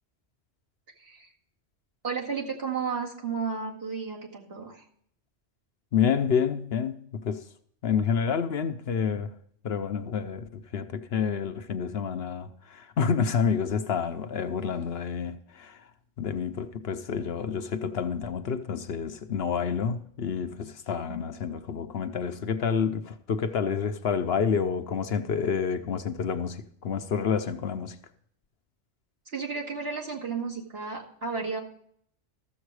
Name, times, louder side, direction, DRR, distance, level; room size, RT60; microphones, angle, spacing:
voice 1, 1.0-1.3 2.0-4.8 21.1-21.2 29.3-31.6, right 5 dB, 55° right, 2.3 m, -33 dB
voice 2, 5.9-7.5 7.8-9.3 9.6-15.8 16.2-28.0, left 6 dB, 60° left, 0.9 m, -29 dB
13.5 x 7.3 x 4.7 m
omnidirectional pair, 1.2 m